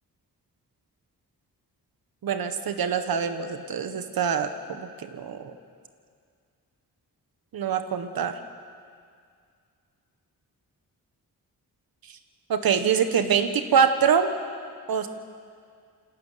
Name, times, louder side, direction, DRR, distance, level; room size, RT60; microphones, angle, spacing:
voice 1, 2.2-5.5 7.5-8.4 12.5-14.3 14.9-15.1, right 7 dB, 75° right, 8 dB, 1.5 m, -24 dB
28.5 x 12.5 x 9.3 m, 2.2 s
wide cardioid pair, 125°, 36 cm